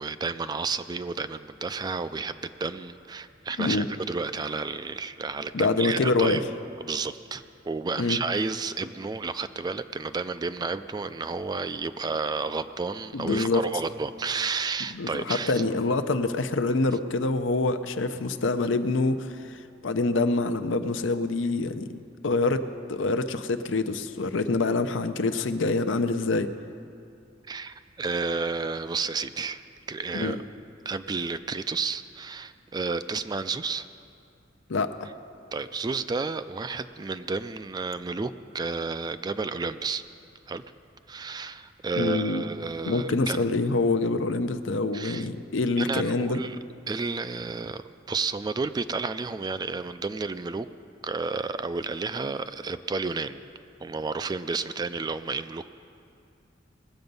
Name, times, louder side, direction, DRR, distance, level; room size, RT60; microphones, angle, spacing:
voice 1, 0.0-6.4 6.8-15.6 27.5-29.6 29.9-30.4 30.9-33.9 35.5-40.0 40.5-40.6 41.1-43.5 44.9-45.3 45.8-46.6 46.9-50.7 51.0-53.4 53.8-55.8, right 4 dB, 20° right, 12 dB, 0.3 m, -31 dB
voice 2, 5.5-6.5 8.0-8.2 13.1-13.6 14.9-22.0 22.2-26.5 30.1-30.4 34.7-35.1 42.0-42.4 42.8-46.4, left 3 dB, 75° left, 10 dB, 0.6 m, -26 dB
20.0 x 7.8 x 5.3 m, 2.5 s
head